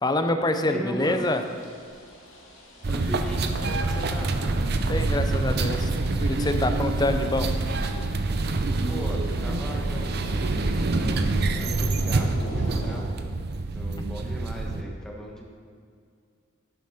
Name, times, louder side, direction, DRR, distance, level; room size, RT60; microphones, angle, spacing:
voice 1, 0.0-1.4 4.9-5.9 6.3-7.5, left 1 dB, 20° left, 7 dB, 0.6 m, -25 dB
voice 2, 0.6-1.3 2.9-4.4 8.9-13.3 13.7-15.4, equal, 5° left, -2 dB, 1.3 m, -38 dB
sound 1, 1.0-13.0, equal, 70° left, 2.2 m, -41 dB
sound 2, 2.8-14.8, right 2 dB, 50° right, 0.5 m, -26 dB
11.5 x 7.2 x 4.3 m, 2.2 s
head